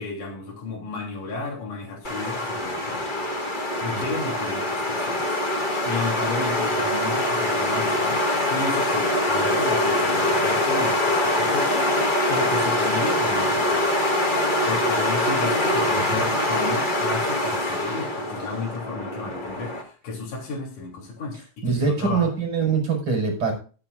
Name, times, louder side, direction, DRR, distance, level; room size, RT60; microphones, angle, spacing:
voice 1, 0.0-3.2 3.6-5.3 5.6-8.2 8.5-11.8 12.3-14.0 14.6-21.4 21.8-22.3, left 3 dB, 70° left, -2 dB, 4.8 m, -33 dB
sound 1, 2.0-19.8, left 1 dB, 25° left, 1.0 m, -24 dB
voice 2, 21.6-23.5, right 5 dB, 40° right, 1 dB, 5.8 m, -23 dB
22.0 x 8.9 x 2.5 m, 0.38 s
omnidirectional pair, 3.7 m